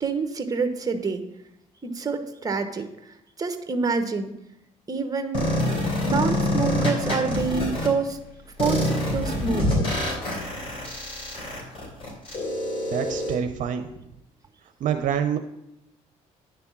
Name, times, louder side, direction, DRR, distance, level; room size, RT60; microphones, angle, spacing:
voice 1, 0.0-1.2 1.8-2.8 3.4-4.3 4.9-5.4 6.0-8.2 8.6-9.7, right 4 dB, 25° right, 7 dB, 1.0 m, -27 dB
sound 1, 5.3-7.9 8.6-13.3, left 1 dB, 40° left, 3.5 m, -26 dB
voice 2, 12.9-13.9 14.8-15.4, right 8 dB, 70° right, 7 dB, 0.6 m, -26 dB
10.0 x 3.5 x 7.2 m, 0.87 s
cardioid pair, 90°, 14 cm